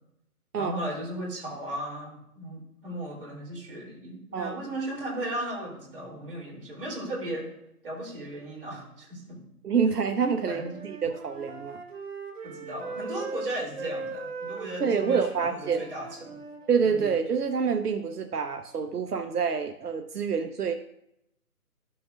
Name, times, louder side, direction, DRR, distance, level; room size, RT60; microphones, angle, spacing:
voice 1, 0.6-7.5 7.8-9.4 10.5-10.8 12.4-16.4 16.8-17.1, right 1 dB, 35° right, -3 dB, 2.5 m, -36 dB
voice 2, 9.6-11.8 14.8-15.8 16.7-20.7, right 6 dB, 85° right, 6 dB, 0.8 m, -27 dB
Wind instrument woodwind instrument, 10.3-17.2, right 3 dB, 55° right, 2.2 m, -39 dB
12.0 x 6.0 x 2.4 m, 0.79 s
figure-of-eight pair, 160°, 45 cm